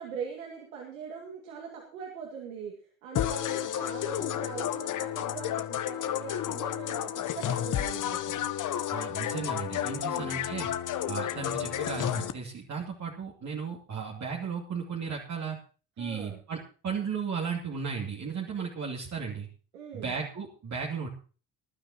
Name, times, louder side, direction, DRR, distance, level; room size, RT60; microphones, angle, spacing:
voice 1, 0.0-8.5 9.9-10.4 16.0-16.4 19.7-20.1, right 6 dB, 85° right, 0 dB, 2.4 m, -41 dB
sound 1, 3.1-12.3, left 11 dB, 50° left, 1.1 m, -31 dB
voice 2, 8.9-10.7 11.1-15.6 16.0-16.6 16.8-19.5 19.9-21.1, right 6 dB, 45° right, -2 dB, 2.6 m, -35 dB
19.5 x 12.0 x 3.0 m, 0.38 s
hypercardioid pair, 55°, 39 cm